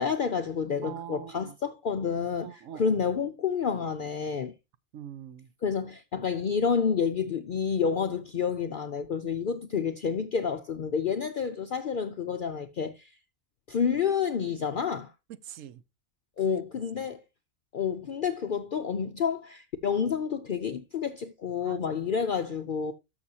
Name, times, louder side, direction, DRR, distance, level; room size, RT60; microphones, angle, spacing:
voice 1, 0.0-4.5 5.6-13.1 13.7-15.1 16.4-17.2 17.7-22.9, left 6 dB, 60° left, 0.5 m, -29 dB
voice 2, 0.8-1.6 2.4-3.0 4.9-5.5 15.3-15.8 16.4-16.6 17.0-17.1 21.6-21.8, right 10 dB, 70° right, 1.0 m, -43 dB
13.0 x 6.2 x 2.7 m
omnidirectional pair, 1.4 m